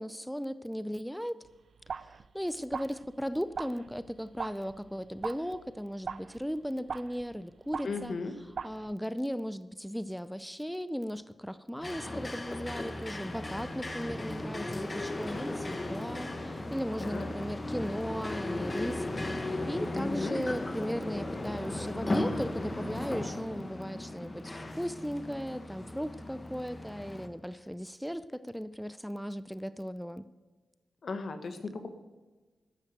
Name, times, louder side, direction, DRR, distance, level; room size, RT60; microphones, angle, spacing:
voice 1, 0.0-1.4 2.0-8.2 8.6-19.1 19.4-30.3, equal, ahead, 14 dB, 0.5 m, -37 dB
sound 1, 1.4-8.9, right 6 dB, 65° right, 0.4 m, -42 dB
voice 2, 7.8-8.3 17.0-17.3 19.9-20.4 31.0-31.9, left 4 dB, 65° left, 9 dB, 1.3 m, -36 dB
sound 2, 11.8-27.3, left 1 dB, 30° left, 1.3 m, -36 dB
12.0 x 7.4 x 7.9 m, 1.3 s
cardioid pair, 65°, 0 cm